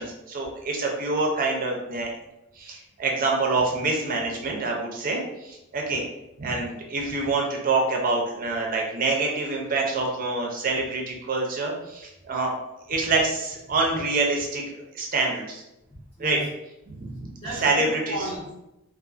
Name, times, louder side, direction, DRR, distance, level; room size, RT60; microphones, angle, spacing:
voice 1, 0.0-2.1 2.6-6.0 6.4-12.5 12.9-14.6 14.9-15.6 16.2-16.4 16.9-17.3 17.6-18.2, right 3 dB, 40° right, 0 dB, 0.5 m, -26 dB
voice 2, 15.9-16.5 17.4-18.5, right 1 dB, 25° left, -10 dB, 0.6 m, -35 dB
2.5 x 2.4 x 2.4 m, 0.90 s
head